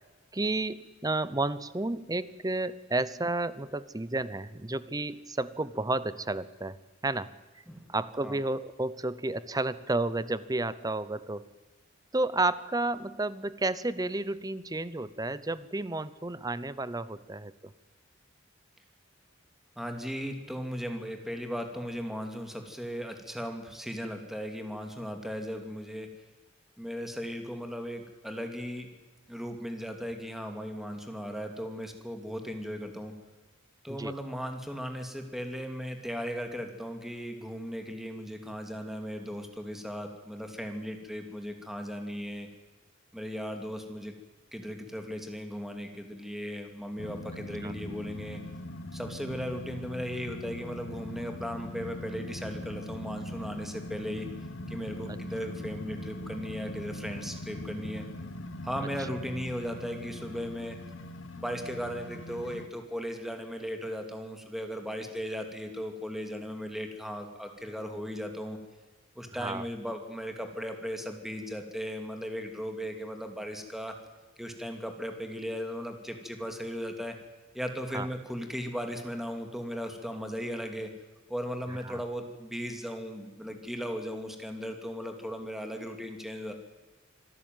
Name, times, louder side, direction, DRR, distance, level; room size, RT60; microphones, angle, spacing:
voice 1, 0.3-6.8 7.0-7.3 7.9-11.5 12.1-17.5 33.9-34.1 47.6-47.7 55.1-55.2 69.4-69.6 77.9-78.1 81.9-82.0, right 2 dB, 20° right, 16 dB, 0.8 m, -31 dB
voice 2, 19.8-26.1 26.8-28.9 29.3-33.1 33.8-42.5 43.1-44.1 44.5-48.4 48.9-54.3 54.7-58.0 58.6-60.8 61.4-68.6 69.2-74.0 74.4-77.1 77.5-80.9 81.3-86.5, equal, ahead, 5 dB, 2.7 m, -37 dB
sound 1, 47.0-62.7, left 1 dB, 75° left, 1.6 m, -41 dB
25.5 x 13.5 x 9.3 m, 1.3 s
head